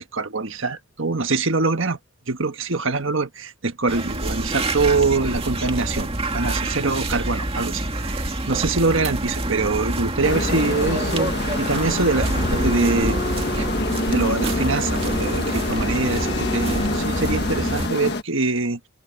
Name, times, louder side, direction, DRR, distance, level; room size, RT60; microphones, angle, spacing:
voice 1, 0.0-2.0 2.3-6.1 6.3-11.3 11.6-13.2 13.5-13.7 14.1-18.8, right 3 dB, 60° right, 1.5 m, -24 dB
sound 1, 3.9-17.9, right 2 dB, 25° right, 2.3 m, -27 dB
sound 2, 10.2-18.2, left 2 dB, 50° left, 1.6 m, -26 dB
Bowed string instrument, 12.3-17.2, left 1 dB, 25° left, 2.9 m, -35 dB
head